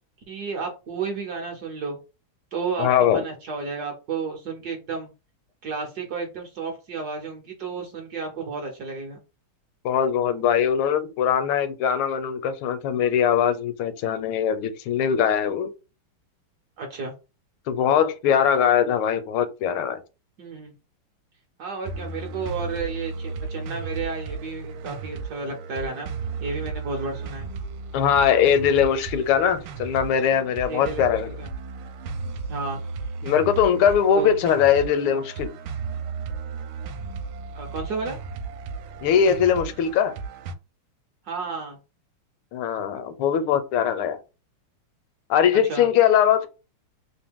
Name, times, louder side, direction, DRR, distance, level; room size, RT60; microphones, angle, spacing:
voice 1, 0.3-2.0 2.5-5.1 5.6-9.2 16.8-17.1 20.4-20.7 21.6-26.1 26.4-27.5 30.7-31.5 32.5-32.8 34.1-34.4 37.5-38.2 41.2-41.8 45.5-45.9, right 4 dB, 65° right, 1.1 m, -32 dB
voice 2, 2.8-3.2 9.8-15.7 17.7-20.0 27.9-31.3 33.2-35.5 39.0-40.1 42.5-44.2 45.3-46.5, left 8 dB, 80° left, 1.4 m, -21 dB
sound 1, 21.9-40.6, right 4 dB, 80° right, 1.4 m, -35 dB
3.4 x 2.7 x 3.5 m
omnidirectional pair, 2.4 m